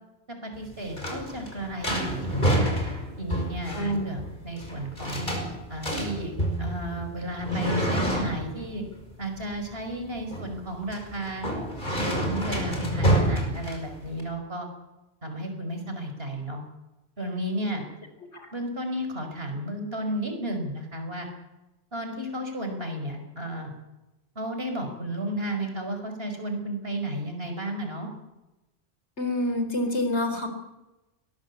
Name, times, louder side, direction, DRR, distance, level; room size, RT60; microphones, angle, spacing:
voice 1, 0.4-2.7 3.2-5.3 5.7-6.3 6.6-8.8 9.2-11.5 12.0-14.7 15.2-16.6 17.2-17.9 18.5-21.3 21.9-23.7 24.4-28.1, right 1 dB, 60° right, 5 dB, 5.5 m, -33 dB
sound 1, 0.5-14.2, right 1 dB, 45° left, 5.9 m, -28 dB
voice 2, 29.2-30.5, left 1 dB, 80° left, 6 dB, 4.4 m, -27 dB
22.5 x 19.5 x 8.4 m, 1.0 s
omnidirectional pair, 1.1 m